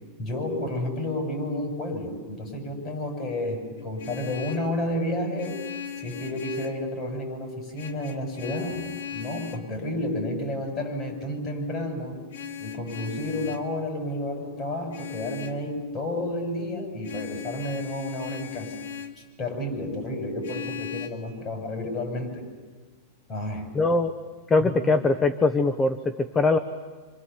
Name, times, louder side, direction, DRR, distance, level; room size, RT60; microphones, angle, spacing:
voice 1, 0.2-5.6 6.0-12.2 12.6-18.7 19.4-22.5 23.3-23.7 24.6-25.0, left 1 dB, 30° left, 3 dB, 7.1 m, -31 dB
Vehicle horn car horn honking, 3.8-4.7 5.4-6.9 7.7-9.7 12.3-13.7 14.9-15.6 17.0-19.2 20.4-21.1, left 8 dB, 90° left, 2.3 m, -37 dB
voice 2, 23.7-24.1 24.5-26.0 26.3-26.6, left 3 dB, 15° left, 10 dB, 0.9 m, -21 dB
27.5 x 26.5 x 7.1 m, 1.4 s
supercardioid pair, 150°, 0 cm